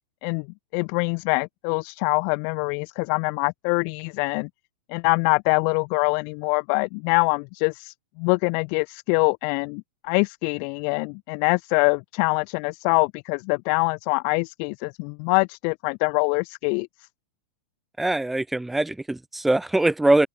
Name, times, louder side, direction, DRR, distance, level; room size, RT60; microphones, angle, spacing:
voice 1, 0.7-4.5 4.9-16.9, left 40 dB or more, 50° left, 1.6 m, -24 dB
voice 2, 18.0-20.3, right 2 dB, 5° right, 0.8 m, -22 dB
open air
hypercardioid pair, 120°, 3 cm